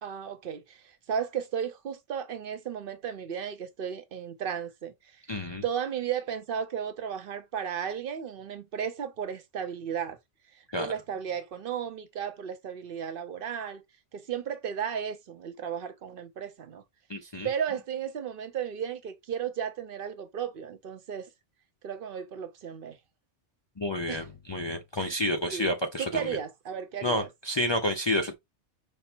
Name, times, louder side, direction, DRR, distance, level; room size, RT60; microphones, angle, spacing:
voice 1, 0.0-5.2 5.6-10.2 10.5-13.8 14.1-16.8 17.4-21.3 21.8-23.0 24.1-24.3 25.0-25.1 25.5-25.7 26.0-27.3, right 8 dB, 55° right, 0.7 m, -34 dB
voice 2, 5.3-5.6 10.7-10.9 17.1-17.5 23.8-26.3 27.0-28.3, left 1 dB, 45° left, 0.3 m, -30 dB
5.4 x 2.0 x 4.3 m
omnidirectional pair, 1.2 m